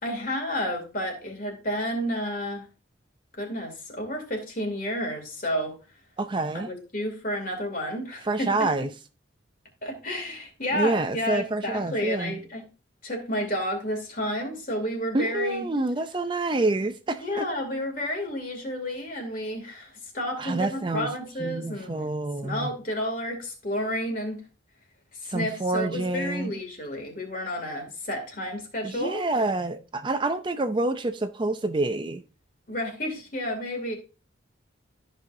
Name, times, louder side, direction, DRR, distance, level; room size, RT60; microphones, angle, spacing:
voice 1, 0.0-2.6 3.4-5.8 6.7-8.7 9.8-12.6 13.0-15.6 17.2-22.0 22.4-24.4 25.2-29.2 32.7-34.0, equal, 45° left, 2.5 m, -31 dB
voice 2, 6.2-6.7 8.2-8.9 10.7-12.4 15.1-17.4 20.4-21.1 21.4-22.7 25.2-26.5 28.8-32.2, right 2 dB, 25° right, 0.4 m, -27 dB
13.5 x 5.5 x 2.6 m
head